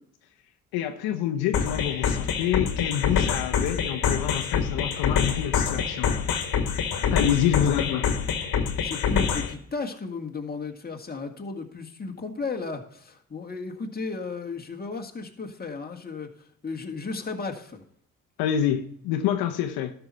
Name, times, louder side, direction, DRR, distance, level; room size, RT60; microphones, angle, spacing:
voice 1, 0.7-6.1 7.1-8.1 18.4-19.9, left 10 dB, 80° left, 1.0 m, -27 dB
sound 1, 1.5-9.5, left 7 dB, 65° left, 1.7 m, -26 dB
voice 2, 8.8-16.3 16.6-17.8, left 4 dB, 25° left, 1.9 m, -34 dB
12.5 x 6.1 x 4.2 m
supercardioid pair, 60°, 37 cm